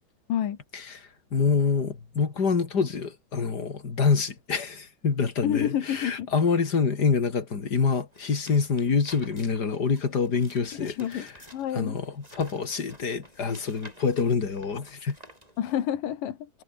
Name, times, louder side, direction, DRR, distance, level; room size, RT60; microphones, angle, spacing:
voice 1, 0.7-11.3 11.7-15.2, left 5 dB, 30° left, 2.8 m, -26 dB
voice 2, 5.4-6.3 10.8-12.0 15.6-16.5, left 10 dB, 75° left, 3.5 m, -29 dB
sound 1, 8.1-15.8, right 1 dB, 10° right, 7.9 m, -52 dB
omnidirectional pair, 3.9 m